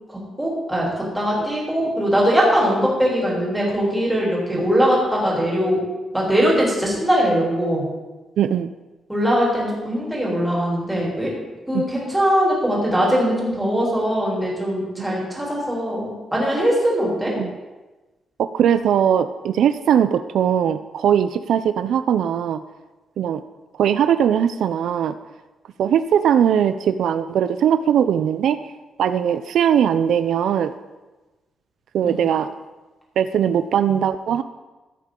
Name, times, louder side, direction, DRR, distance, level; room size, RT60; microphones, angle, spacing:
voice 1, 0.1-5.8 6.1-7.9 9.1-11.3 11.7-17.3 32.1-32.2, equal, 5° right, -5 dB, 3.3 m, -21 dB
voice 2, 8.4-8.7 11.7-11.9 15.1-15.2 17.4-17.5 18.4-22.6 23.2-23.4 23.8-25.1 25.8-28.7 29.0-30.7 31.9-32.5 33.2-34.4, right 9 dB, 70° right, 11 dB, 0.4 m, -20 dB
14.5 x 9.0 x 3.8 m, 1.2 s
wide cardioid pair, 165°, 0 cm